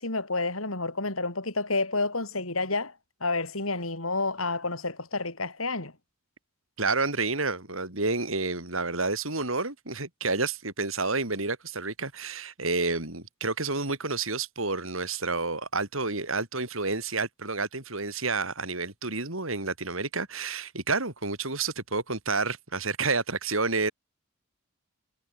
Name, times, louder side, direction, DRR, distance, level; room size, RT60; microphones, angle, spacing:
voice 1, 0.0-2.9 3.2-5.9, left 3 dB, 85° left, 7.7 m, -29 dB
voice 2, 6.8-23.9, right 3 dB, 75° right, 6.2 m, -29 dB
head